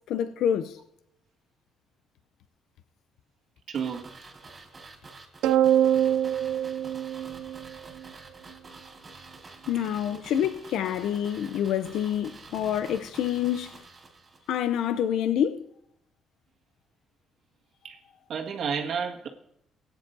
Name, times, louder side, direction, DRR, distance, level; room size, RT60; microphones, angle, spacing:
voice 1, 0.1-0.8 9.7-13.7 14.5-15.6, left 9 dB, 75° left, 0.5 m, -27 dB
sound 1, 3.7-14.7 15.0-15.1, right 3 dB, 30° right, 3.5 m, -48 dB
voice 2, 3.7-4.1 9.7-10.2 17.8-18.0 18.3-19.3, right 6 dB, 60° right, 1.7 m, -32 dB
sound 2, 5.4-8.0, right 10 dB, 90° right, 0.3 m, -24 dB
17.5 x 9.7 x 2.6 m
cardioid pair, 120°, 0 cm